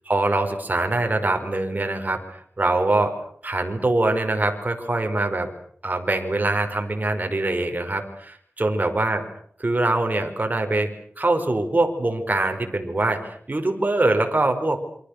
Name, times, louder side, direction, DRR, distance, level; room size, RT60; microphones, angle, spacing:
voice 1, 0.1-3.2 3.4-5.5 5.8-9.2 9.6-14.8, right 2 dB, 40° right, 5 dB, 5.3 m, -23 dB
28.5 x 25.0 x 6.8 m, 0.62 s
wide cardioid pair, 75°, 4 cm